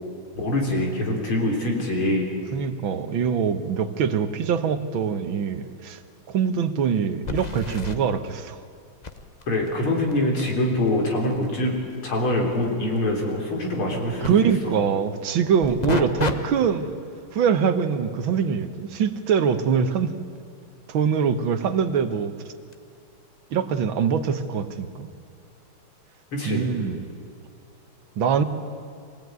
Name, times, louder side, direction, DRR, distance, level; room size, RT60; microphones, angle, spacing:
voice 1, 0.4-2.3 9.5-11.7 12.0-14.3 14.6-14.8 16.0-16.1 26.3-26.7, left 1 dB, 85° left, 0 dB, 4.5 m, -24 dB
voice 2, 2.5-6.0 6.3-8.6 14.2-17.0 17.3-20.1 20.9-22.3 23.5-25.1 26.5-27.1 28.2-28.4, right 7 dB, 75° right, 10 dB, 1.8 m, -23 dB
sound 1, 5.4-5.5 5.9-6.0 7.2-8.0 9.0-14.3 15.6-16.3 16.8-17.1 21.7-21.8 22.7-22.8, left 4 dB, 35° left, 0.7 m, -34 dB
24.0 x 17.5 x 9.4 m, 2.4 s
omnidirectional pair, 2.3 m